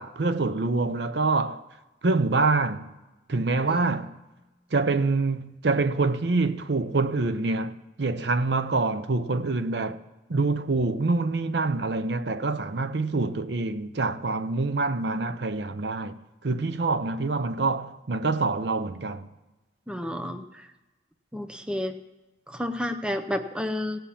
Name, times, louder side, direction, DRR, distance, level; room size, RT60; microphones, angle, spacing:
voice 1, 0.0-1.6 2.0-2.9 3.3-4.2 4.7-7.7 8.0-10.0 10.3-19.3, right 3 dB, 65° right, 0.6 m, -26 dB
voice 2, 19.9-20.4 21.3-22.0 22.5-24.0, left 1 dB, 5° right, 0.6 m, -30 dB
17.0 x 5.7 x 8.5 m
head